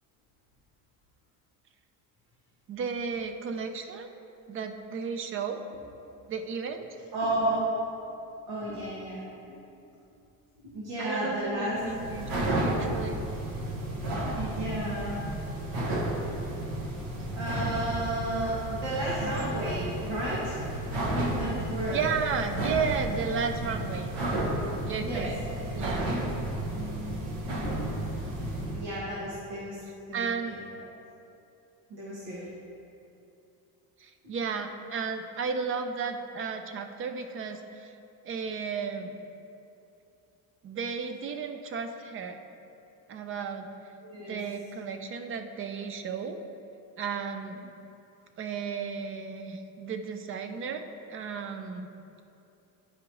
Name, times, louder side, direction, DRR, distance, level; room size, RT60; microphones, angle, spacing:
voice 1, 2.7-4.1 4.5-5.6 6.3-6.9 11.0-12.3 12.6-13.2 21.9-24.1 24.9-25.4 25.7-26.1 30.1-30.6 34.0-37.9 38.2-39.2 40.6-42.4 43.1-43.7 44.2-46.4 47.0-47.7 48.4-51.9, right 6 dB, 35° right, 7 dB, 0.4 m, -33 dB
voice 2, 7.1-7.7 8.5-9.2 9.5-9.6 10.6-11.8 14.3-15.2 17.3-20.6 21.2-22.0 25.0-25.3 28.7-29.8 30.1-30.5 31.9-32.4 34.2-34.3 44.0-44.4, right 1 dB, 85° right, -7 dB, 1.7 m, -32 dB
sound 1, 11.7-28.9, right 1 dB, 65° right, 1.2 m, -32 dB
10.5 x 4.9 x 3.0 m, 2.8 s
cardioid pair, 155°, 40 cm